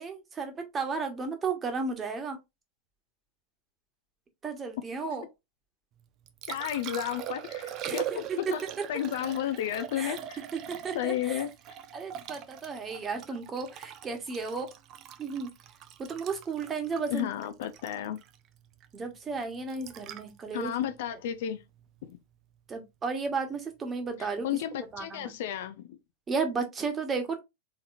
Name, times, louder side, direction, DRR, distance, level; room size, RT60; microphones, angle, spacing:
voice 1, 0.0-2.4 4.4-5.2 7.8-8.4 10.0-10.2 10.5-11.4 11.9-14.7 15.2-15.5 16.0-17.3 18.9-20.7 22.7-24.5 24.9-25.3 26.3-27.4, right 4 dB, 20° right, 1.3 m, -33 dB
Liquid, 6.0-22.1 24.9-25.0, right 11 dB, 35° right, 0.6 m, -42 dB
voice 2, 6.5-8.3 8.5-8.6 8.9-10.4 10.9-11.5 17.1-18.2 20.5-21.6 22.0-22.1 24.4-26.0, left 11 dB, 55° left, 0.5 m, -32 dB
4.1 x 4.0 x 2.5 m
figure-of-eight pair, 90°, 0 cm